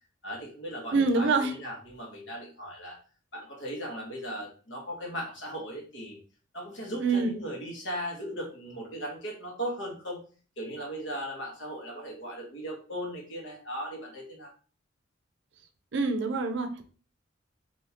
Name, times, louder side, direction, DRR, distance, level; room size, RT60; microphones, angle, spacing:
voice 1, 0.2-3.0 3.3-6.2 6.5-10.2 10.6-14.5, equal, 65° left, -1 dB, 1.3 m, -37 dB
voice 2, 0.9-1.5 7.0-7.4 15.9-16.9, right 3 dB, 65° right, 7 dB, 0.5 m, -26 dB
3.5 x 2.8 x 2.8 m, 0.39 s
head